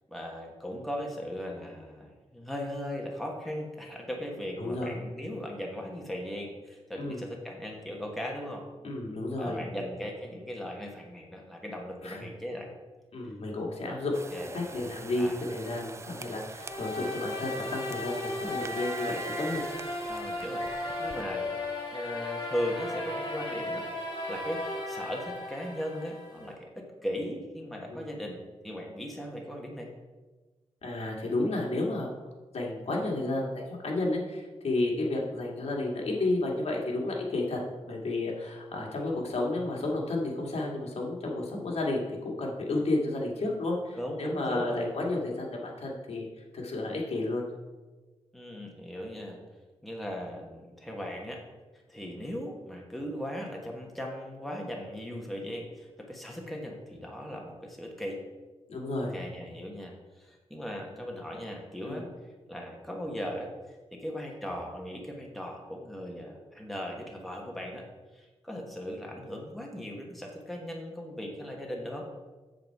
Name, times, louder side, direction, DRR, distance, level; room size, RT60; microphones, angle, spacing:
voice 1, 0.1-8.6 9.4-12.7 13.9-14.0 14.3-14.6 15.2-15.4 20.1-20.7 21.0-21.6 21.9-23.8 24.3-29.9 43.9-44.9 48.3-49.4 49.8-51.4 51.9-58.2 59.1-67.8 68.1-72.1, equal, ahead, 0 dB, 1.1 m, -38 dB
voice 2, 4.6-4.9 7.0-7.2 8.8-9.6 12.0-12.3 13.1-14.1 14.5-19.7 27.9-28.0 30.8-32.1 32.5-46.3 46.5-47.4 58.7-59.1 61.9-62.0, left 2 dB, 70° left, -2 dB, 1.9 m, -32 dB
sound 1, 14.1-21.2, right 4 dB, 25° right, 0.3 m, -44 dB
sound 2, 16.6-26.5, left 2 dB, 40° left, 2.5 m, -36 dB
7.7 x 7.5 x 4.6 m, 1.2 s
wide cardioid pair, 160°, 11 cm